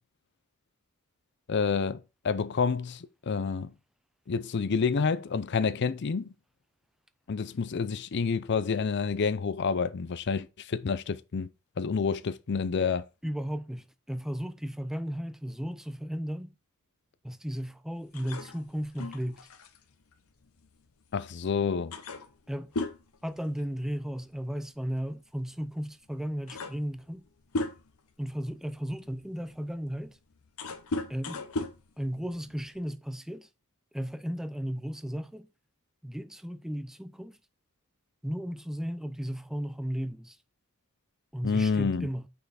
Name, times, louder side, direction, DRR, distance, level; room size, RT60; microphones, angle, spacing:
voice 1, 1.5-3.7 4.3-6.3 7.3-11.5 11.8-13.1 21.1-21.9 41.4-42.1, left 5 dB, 50° left, 0.5 m, -28 dB
voice 2, 13.2-16.6 17.2-19.5 22.5-22.7 23.2-27.3 28.2-30.2 31.1-31.4 32.0-33.5 33.9-35.5 36.0-37.4 38.2-40.4 41.3-42.3, equal, ahead, 0.4 m, -35 dB
sound 1, 18.1-21.2 21.5-21.6 21.9-24.1 24.4-24.6 25.6-25.7 26.2-28.1 28.7-32.8, left 2 dB, 80° left, 0.9 m, -37 dB
6.2 x 5.6 x 4.1 m
head